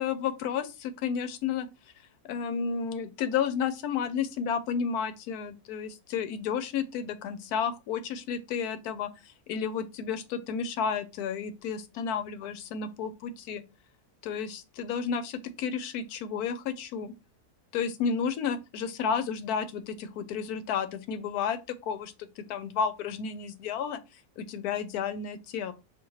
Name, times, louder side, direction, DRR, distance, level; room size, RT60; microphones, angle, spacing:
voice 1, 0.0-1.7 2.3-13.6 14.2-17.1 17.7-24.0 24.4-25.7, left 7 dB, 80° left, 1.1 m, -32 dB
5.0 x 2.8 x 3.0 m
omnidirectional pair, 1.6 m